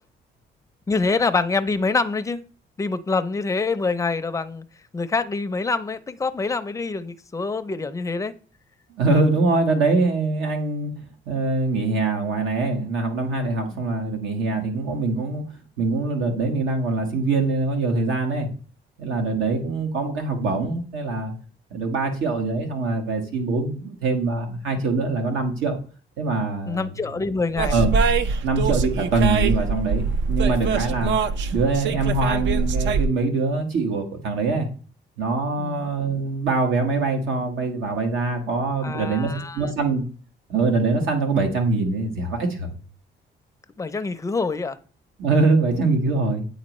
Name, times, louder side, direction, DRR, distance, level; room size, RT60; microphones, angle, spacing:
voice 1, 0.9-2.4 2.8-4.6 4.9-8.3 26.7-27.7 35.6-35.9 38.8-39.7 43.8-44.8, left 4 dB, 15° left, 0.5 m, -25 dB
voice 2, 9.0-10.9 11.3-15.4 15.8-18.5 19.0-21.3 21.7-25.8 26.2-26.9 27.7-27.9 28.4-31.1 31.5-34.7 35.2-40.1 40.5-42.8 45.2-46.5, right 3 dB, 85° right, 1.4 m, -23 dB
sound 1, 27.6-33.1, right 4 dB, 70° right, 0.5 m, -23 dB
8.6 x 4.0 x 3.1 m
cardioid pair, 90°, 20 cm